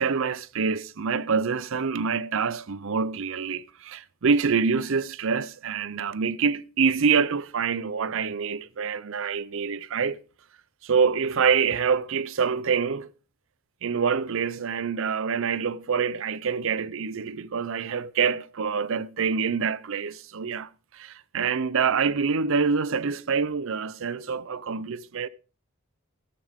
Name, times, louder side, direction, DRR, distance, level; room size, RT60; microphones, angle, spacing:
voice 1, 0.0-10.2 10.8-13.1 13.8-25.3, right 6 dB, 65° right, 0.6 m, -26 dB
13.5 x 12.5 x 3.6 m
head